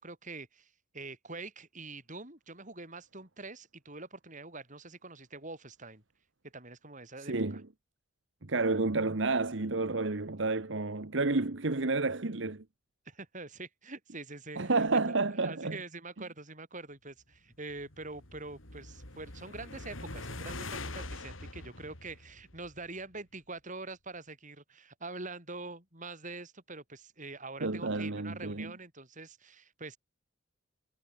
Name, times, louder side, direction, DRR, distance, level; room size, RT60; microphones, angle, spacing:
voice 1, 0.0-6.0 6.5-7.6 13.1-30.0, right 3 dB, 40° right, 7.8 m, -45 dB
voice 2, 7.2-7.6 8.5-12.6 14.6-15.8 27.6-28.7, right 3 dB, 70° right, 1.2 m, -30 dB
sound 1, 17.5-23.0, left 2 dB, 90° left, 6.6 m, -44 dB
head